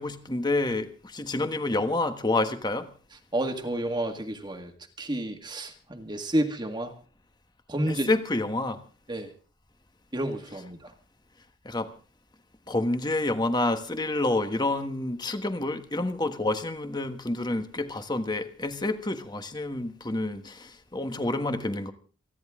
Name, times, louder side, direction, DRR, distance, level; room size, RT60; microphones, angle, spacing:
voice 1, 0.0-2.9 7.9-8.8 11.6-11.9 12.7-21.9, left 2 dB, 20° left, 8 dB, 1.3 m, -28 dB
voice 2, 3.3-4.7 5.0-6.9 7.7-8.1 9.1-9.3 10.1-10.9, right 1 dB, 25° right, 4 dB, 1.8 m, -30 dB
28.5 x 10.5 x 3.7 m, 0.40 s
head